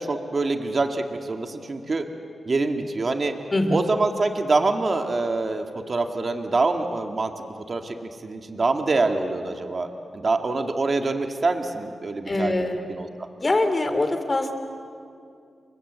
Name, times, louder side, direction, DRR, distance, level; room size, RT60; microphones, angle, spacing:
voice 1, 0.0-2.1 2.4-3.3 3.7-7.3 7.6-9.9 10.1-13.1, right 3 dB, 45° right, 5 dB, 2.0 m, -25 dB
voice 2, 12.3-12.8 13.4-14.5, left 2 dB, 30° left, 7 dB, 3.1 m, -23 dB
29.5 x 24.0 x 8.1 m, 2.4 s
cardioid pair, 85°, 0 cm